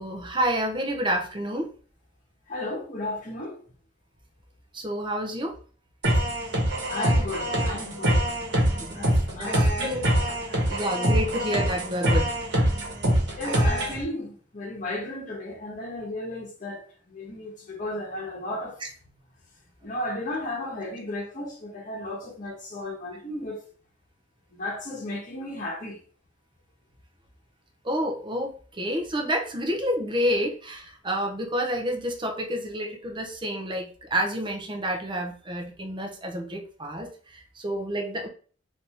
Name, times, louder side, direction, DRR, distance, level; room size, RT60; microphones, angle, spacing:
voice 1, 0.0-1.7 4.7-5.6 8.8-9.0 9.3-10.0 10.7-12.3 18.8-18.9 27.8-38.3, equal, 25° right, 0.6 m, -29 dB
voice 2, 2.5-3.6 6.9-8.2 8.9-9.1 9.3-10.1 10.5-10.6 13.3-18.8 19.8-23.6 24.5-26.0, left 1 dB, 40° left, 1.0 m, -34 dB
sound 1, 6.0-14.0, equal, 65° right, 1.2 m, -24 dB
3.4 x 2.7 x 2.9 m
head